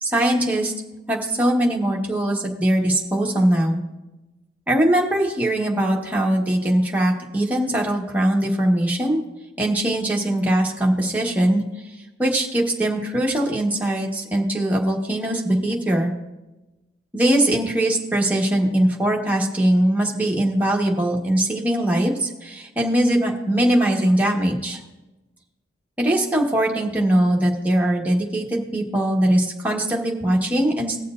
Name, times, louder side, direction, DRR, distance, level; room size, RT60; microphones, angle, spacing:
voice 1, 0.0-0.7 1.1-3.8 4.7-9.2 9.6-11.6 12.2-16.1 17.1-24.8 26.0-31.0, right 1 dB, 10° right, -2 dB, 1.2 m, -21 dB
19.5 x 7.0 x 2.5 m, 1.1 s
head